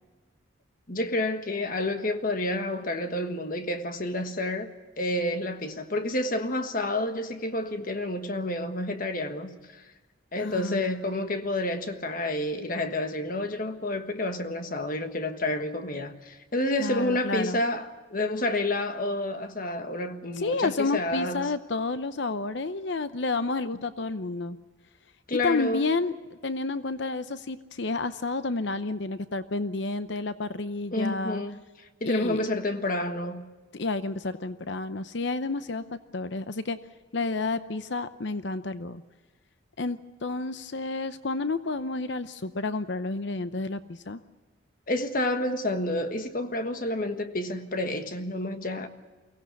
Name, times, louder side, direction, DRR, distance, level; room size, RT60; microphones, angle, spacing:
voice 1, 0.9-4.7 5.0-9.8 10.3-21.5 25.3-25.9 30.9-31.6 32.0-33.5 44.9-48.9, left 1 dB, 45° left, 1.4 m, -29 dB
voice 2, 10.4-10.9 16.8-17.6 20.4-24.6 25.3-26.1 26.4-31.4 32.0-32.4 33.7-36.8 37.1-39.0 39.8-44.2, left 3 dB, 60° left, 0.7 m, -30 dB
23.5 x 17.0 x 8.4 m
head